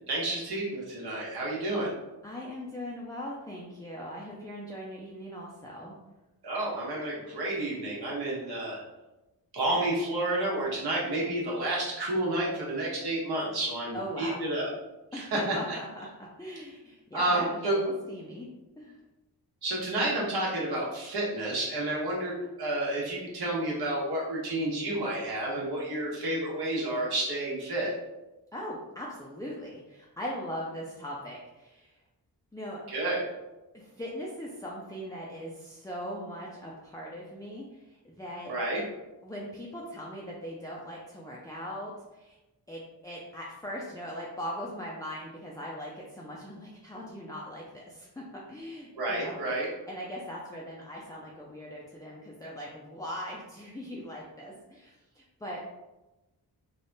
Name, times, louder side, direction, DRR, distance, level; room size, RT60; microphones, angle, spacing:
voice 1, 0.1-1.9 6.4-8.8 9.5-14.7 15.1-15.8 17.1-17.8 19.6-27.9 32.9-33.2 38.5-38.8 49.0-49.7, right 1 dB, 75° right, -4 dB, 1.4 m, -30 dB
voice 2, 2.2-5.9 13.9-14.4 15.1-18.5 18.8-19.0 28.5-31.9 32.5-32.8 33.7-38.6 39.2-42.4 42.7-49.6 49.9-55.6, equal, 10° left, -5 dB, 0.4 m, -40 dB
3.5 x 2.4 x 3.9 m, 1.0 s
wide cardioid pair, 145°, 38 cm